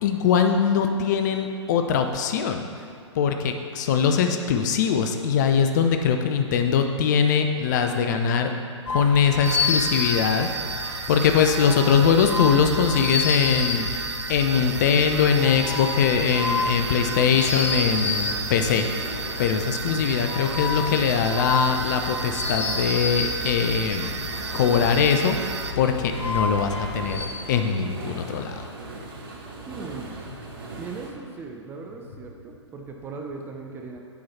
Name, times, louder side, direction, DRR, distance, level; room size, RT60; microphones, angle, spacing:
voice 1, 0.0-2.7 3.1-8.5 8.9-10.5 10.8-18.9 19.4-24.1 24.5-25.4 25.8-28.7, left 7 dB, 35° left, 5 dB, 0.5 m, -22 dB
sound 1, 8.9-27.3, left 3 dB, 70° left, 1.0 m, -30 dB
sound 2, 9.4-25.7, right 4 dB, 65° right, 0.6 m, -34 dB
Dishwasher(loud), 14.5-31.1, right 2 dB, 45° right, 1.2 m, -39 dB
voice 2, 29.7-30.2 30.8-34.0, right 4 dB, 15° right, 2 dB, 0.5 m, -38 dB
7.1 x 4.7 x 5.6 m, 2.4 s
figure-of-eight pair, 115°, 16 cm